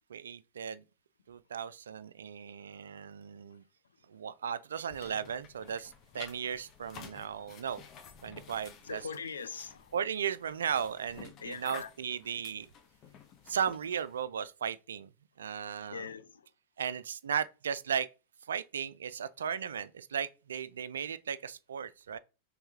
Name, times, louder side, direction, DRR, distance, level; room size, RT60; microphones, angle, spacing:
voice 1, 0.1-0.8 1.3-3.6 4.1-7.8 8.2-9.0 9.9-12.7 13.5-15.1 15.4-16.1 16.8-18.1 18.5-22.2, right 7 dB, 80° right, 0.3 m, -36 dB
sound 1, 4.9-14.2, left 7 dB, 40° left, 0.8 m, -52 dB
voice 2, 8.8-9.9 11.4-11.9 15.9-16.5, left 6 dB, 85° left, 0.5 m, -41 dB
3.5 x 3.0 x 3.6 m
hypercardioid pair, 100°, 0 cm